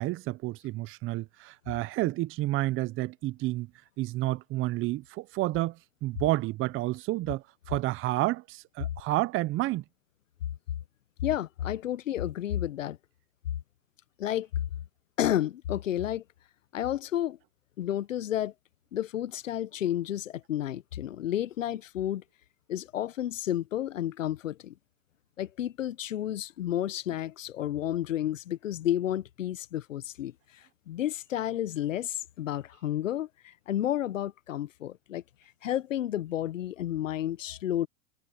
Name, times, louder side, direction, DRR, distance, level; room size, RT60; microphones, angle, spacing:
voice 1, 0.0-3.7 4.0-9.8, right 18 dB, 35° right, 0.8 m, -30 dB
voice 2, 11.2-13.0 14.2-14.5 15.2-16.2 16.7-17.4 17.8-18.5 18.9-22.2 22.7-24.7 25.4-35.2 35.6-37.9, left 12 dB, 80° left, 1.2 m, -31 dB
hypercardioid pair, 105°, 38 cm